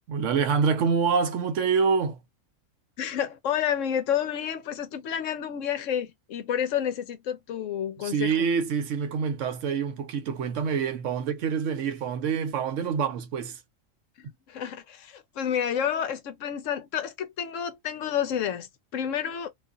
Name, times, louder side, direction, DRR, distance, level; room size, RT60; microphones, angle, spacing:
voice 1, 0.1-2.2 8.0-13.6, right 6 dB, 75° right, 0.9 m, -26 dB
voice 2, 3.0-8.5 14.2-19.5, left 9 dB, 75° left, 1.0 m, -30 dB
2.5 x 2.4 x 2.3 m
omnidirectional pair, 1.4 m